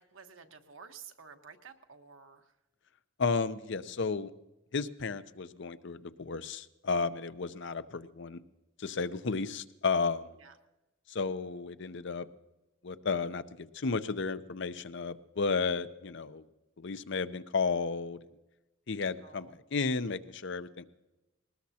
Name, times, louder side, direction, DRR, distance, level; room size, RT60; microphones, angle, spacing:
voice 1, 0.0-2.5 10.4-10.6 19.2-19.5, right 6 dB, 85° right, 5 dB, 1.4 m, -52 dB
voice 2, 3.2-4.3 4.7-8.4 8.8-10.3 11.1-12.3 12.8-16.5 16.8-18.2 18.9-20.9, left 4 dB, 65° left, 12 dB, 0.7 m, -33 dB
20.5 x 19.0 x 2.9 m, 1.0 s
head